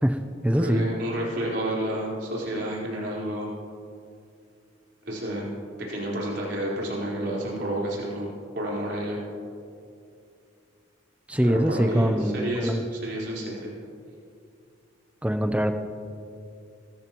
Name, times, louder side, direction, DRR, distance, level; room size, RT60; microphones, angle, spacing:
voice 1, 0.0-0.9 11.3-12.8 15.2-15.7, equal, 5° right, 7 dB, 0.6 m, -23 dB
voice 2, 0.6-3.5 5.0-5.5 5.8-8.3 8.5-9.2 11.4-13.7, right 1 dB, 55° right, -5 dB, 4.3 m, -30 dB
23.0 x 14.0 x 3.0 m, 2.4 s
head